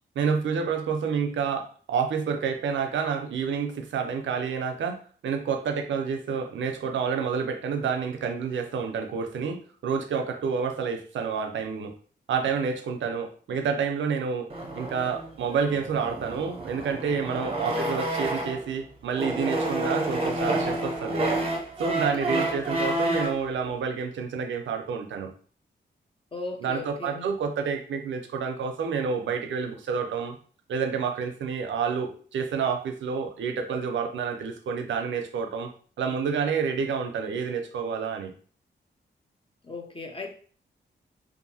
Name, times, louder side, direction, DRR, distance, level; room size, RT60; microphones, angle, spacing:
voice 1, 0.2-5.0 5.2-11.9 12.3-14.5 14.8-21.3 21.8-25.3 26.6-30.4 30.7-35.7 36.0-38.3, right 6 dB, 90° right, 5 dB, 0.5 m, -29 dB
sound 1, 14.5-18.7 19.1-23.4, right 1 dB, 30° right, 0.6 m, -29 dB
voice 2, 17.3-17.8 22.1-22.5 26.3-27.3 39.6-40.3, left 3 dB, 30° left, 3 dB, 0.5 m, -38 dB
2.7 x 2.5 x 2.7 m, 0.44 s
wide cardioid pair, 105°, 19 cm